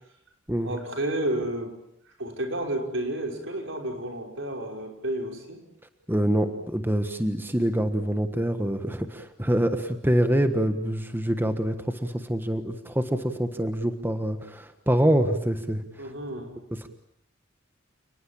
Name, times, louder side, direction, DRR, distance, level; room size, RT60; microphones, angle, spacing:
voice 1, 0.6-1.7 2.2-5.6 16.0-16.6, right 1 dB, 70° right, 3 dB, 5.6 m, -31 dB
voice 2, 6.1-16.1 16.8-16.9, right 1 dB, 10° right, 8 dB, 1.4 m, -25 dB
29.5 x 20.5 x 8.7 m, 0.74 s
head